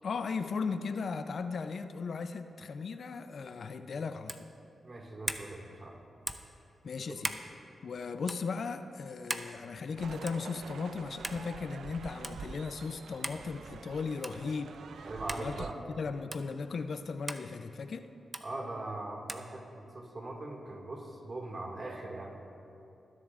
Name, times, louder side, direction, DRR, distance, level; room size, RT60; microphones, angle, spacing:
voice 1, 0.0-4.5 6.8-7.4 7.8-14.7 15.3-18.1, left 5 dB, 65° left, 9 dB, 0.5 m, -37 dB
sound 1, 4.2-4.5 5.2-5.5 6.2-6.5 7.2-7.5 8.2-8.4 9.3-9.5 10.3-10.5 11.2-11.4 12.2-12.4 13.2-13.4 14.2-14.4 15.3-15.4 16.3-16.4 17.3-17.4 18.3-18.5 19.3-19.5, right 2 dB, 20° right, 0.7 m, -37 dB
voice 2, 4.8-6.0 7.1-7.2 15.0-15.8 18.4-19.6 19.9-22.5, right 2 dB, 45° right, 0 dB, 2.0 m, -41 dB
sound 2, 10.0-15.7, right 6 dB, 80° right, 0.4 m, -46 dB
20.0 x 10.5 x 2.5 m, 2.8 s
cardioid pair, 70°, 0 cm